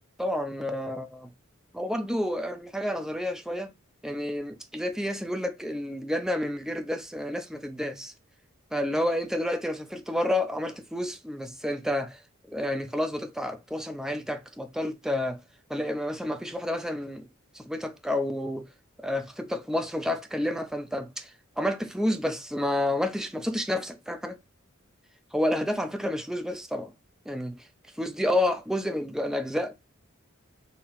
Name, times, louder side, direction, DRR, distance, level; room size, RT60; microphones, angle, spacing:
voice 1, 0.2-1.3 1.7-3.7 4.0-8.1 8.7-12.2 12.5-15.4 15.7-17.2 17.5-18.7 19.0-21.3 21.6-24.4 25.3-26.9 27.3-27.6 28.0-29.7, left 1 dB, 5° right, 0.4 m, -30 dB
4.2 x 2.8 x 2.5 m
head